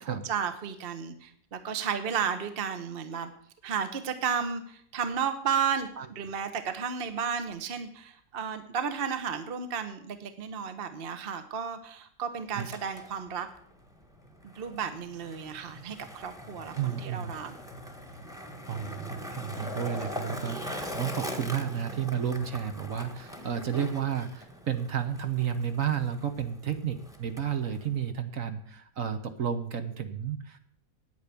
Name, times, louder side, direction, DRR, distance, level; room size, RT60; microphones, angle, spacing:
voice 1, 0.0-3.3 3.6-13.5 14.4-17.5, right 7 dB, 45° right, 9 dB, 1.1 m, -33 dB
Skateboard, 12.5-28.1, equal, ahead, 1.2 m, -42 dB
voice 2, 16.7-17.3 18.7-30.6, right 8 dB, 60° right, 8 dB, 1.5 m, -32 dB
9.5 x 9.2 x 8.3 m, 0.64 s
omnidirectional pair, 1.6 m